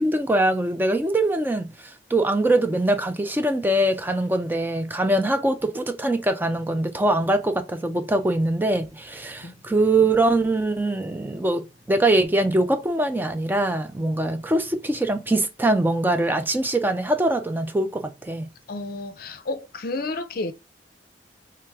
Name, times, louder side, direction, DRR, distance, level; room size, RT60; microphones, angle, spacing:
voice 1, 0.0-18.5, right 1 dB, 10° right, 0.4 m, -23 dB
voice 2, 18.7-20.5, left 2 dB, 55° left, 0.5 m, -31 dB
3.5 x 3.3 x 3.3 m
head